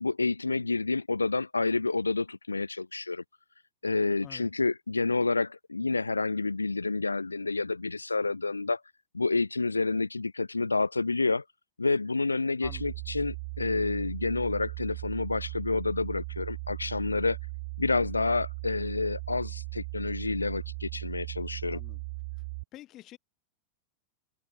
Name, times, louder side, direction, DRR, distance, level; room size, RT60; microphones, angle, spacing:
voice 1, 0.0-3.2 3.8-8.8 9.1-11.4 11.8-17.4 17.8-21.8, left 3 dB, 80° left, 0.6 m, -29 dB
voice 2, 12.6-12.9 21.7-22.0 22.7-23.2, left 14 dB, 35° left, 2.3 m, -48 dB
sound 1, 12.6-22.6, right 29 dB, 45° right, 1.4 m, -38 dB
open air
figure-of-eight pair, 90°, 0 cm